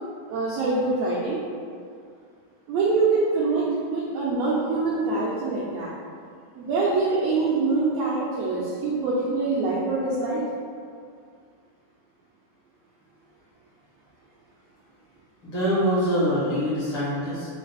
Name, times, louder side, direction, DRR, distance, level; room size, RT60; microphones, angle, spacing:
voice 1, 0.3-1.4 2.7-5.9 6.6-10.4, right 3 dB, 85° right, -7 dB, 1.4 m, -24 dB
voice 2, 15.4-17.5, equal, 60° left, -10 dB, 1.6 m, -24 dB
4.6 x 2.4 x 3.3 m, 2.2 s
omnidirectional pair, 3.5 m